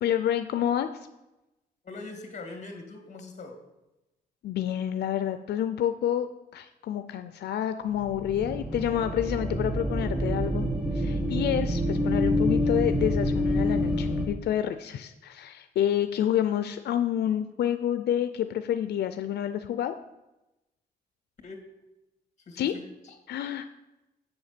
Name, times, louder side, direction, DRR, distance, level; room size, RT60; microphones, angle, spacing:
voice 1, 0.0-1.1 4.4-10.7 10.9-19.9 22.6-22.7 23.3-23.7, left 10 dB, 90° left, 9 dB, 0.5 m, -28 dB
voice 2, 1.8-3.6 21.4-21.6 22.5-23.2, left 3 dB, 45° left, 4 dB, 2.2 m, -42 dB
sound 1, 7.9-14.3, left 1 dB, 5° right, 1.5 m, -27 dB
7.8 x 7.1 x 6.7 m, 0.97 s
wide cardioid pair, 130°, 17 cm